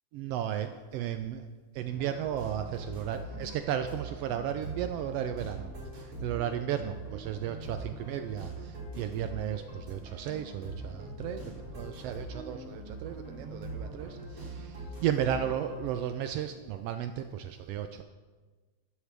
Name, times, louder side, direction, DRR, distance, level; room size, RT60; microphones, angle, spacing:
voice 1, 0.1-1.5 1.7-11.4 11.7-18.0, right 10 dB, 85° right, 8 dB, 1.4 m, -34 dB
sound 1, 1.9-15.9, right 2 dB, 30° right, 3.2 m, -42 dB
13.0 x 12.5 x 3.5 m, 1.3 s
omnidirectional pair, 3.4 m